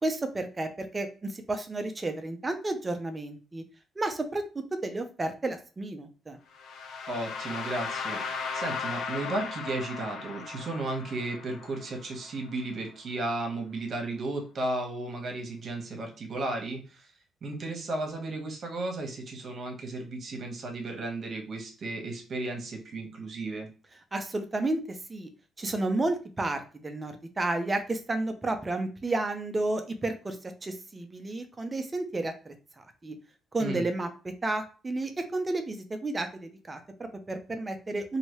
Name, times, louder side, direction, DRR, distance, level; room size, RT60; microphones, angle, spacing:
voice 1, 0.0-3.6 4.0-4.4 4.8-6.4 24.1-25.3 25.6-33.2 33.5-34.1 34.4-38.2, right 2 dB, 25° right, 7 dB, 0.6 m, -32 dB
sound 1, 6.5-12.5, left 5 dB, 80° left, 0.7 m, -37 dB
voice 2, 7.1-8.2 8.5-17.1 17.4-23.7 33.6-33.9, right 2 dB, 50° right, 2 dB, 1.1 m, -34 dB
3.0 x 2.7 x 3.0 m, 0.36 s
cardioid pair, 90°, 0 cm